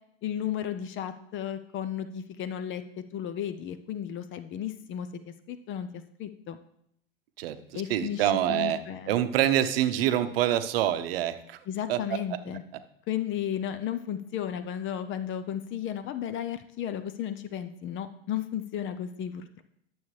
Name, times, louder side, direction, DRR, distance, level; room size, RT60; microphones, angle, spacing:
voice 1, 0.2-5.9 6.2-6.6 7.7-9.1 11.7-12.6 13.1-19.6, left 10 dB, 40° left, 11 dB, 0.6 m, -34 dB
voice 2, 7.4-8.8 9.1-11.6 11.9-12.2, right 12 dB, 70° right, 11 dB, 0.7 m, -26 dB
11.5 x 7.1 x 3.2 m, 0.73 s
hypercardioid pair, 85°, 30 cm